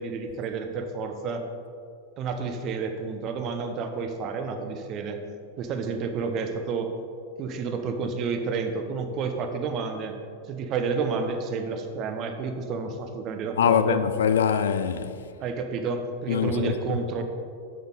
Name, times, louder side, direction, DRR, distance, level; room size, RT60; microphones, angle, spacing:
voice 1, 0.0-1.4 2.2-5.2 5.6-6.9 7.4-10.2 10.5-14.0 15.4-17.2, right 5 dB, 35° right, 0.8 m, -30 dB
voice 2, 13.6-15.1 16.3-16.7, left 8 dB, 65° left, 0.4 m, -23 dB
7.5 x 7.0 x 3.9 m
figure-of-eight pair, 90°, 0 cm